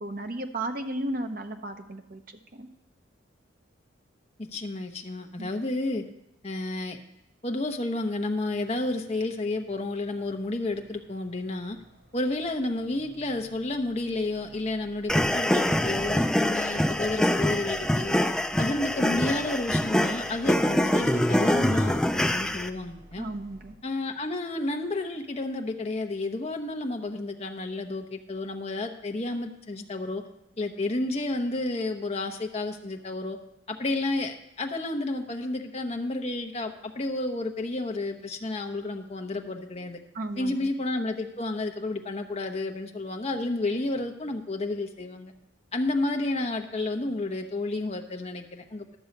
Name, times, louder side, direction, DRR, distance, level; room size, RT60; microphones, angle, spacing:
voice 1, 0.0-2.2 2.5-2.7 5.4-5.5 23.2-23.7 40.1-40.7, right 1 dB, 45° right, 6 dB, 0.9 m, -34 dB
voice 2, 4.4-6.0 6.4-7.0 7.4-11.8 12.1-18.2 18.6-23.3 23.8-30.2 30.6-33.4 33.7-40.0 40.4-45.3 45.7-48.9, left 2 dB, 30° left, 4 dB, 0.8 m, -31 dB
sound 1, 8.5-23.7, equal, 65° right, 4.1 m, -53 dB
sound 2, 15.1-22.7, left 1 dB, 5° left, 0.3 m, -25 dB
12.0 x 7.0 x 5.3 m, 0.87 s
head